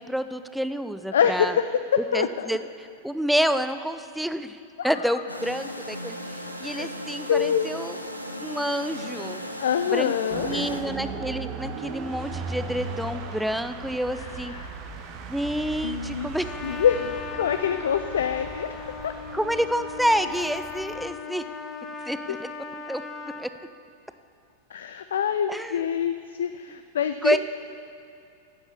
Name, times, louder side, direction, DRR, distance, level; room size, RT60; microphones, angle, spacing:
voice 1, 0.0-1.5 2.1-2.6 3.0-4.6 4.8-6.2 6.6-8.0 8.4-9.4 9.9-10.1 10.4-14.5 15.3-16.5 19.3-21.4 22.0-22.5 22.9-23.0 23.4-23.5 25.5-25.9 27.2-27.4, equal, ahead, 11 dB, 0.5 m, -28 dB
voice 2, 1.1-1.6 2.1-2.5 4.8-4.9 6.6-6.9 7.3-7.7 9.6-10.9 14.2-14.7 15.8-16.3 16.6-19.1 22.0-22.1 24.7-27.4, left 8 dB, 65° left, 9 dB, 0.4 m, -26 dB
sound 1, 5.3-10.8, equal, 90° right, 0.8 m, -36 dB
sound 2, 10.3-21.1, right 4 dB, 40° right, 1.1 m, -37 dB
Trumpet, 16.4-23.5, left 5 dB, 20° left, 0.8 m, -38 dB
11.5 x 8.0 x 7.2 m, 2.4 s
figure-of-eight pair, 90°, 0 cm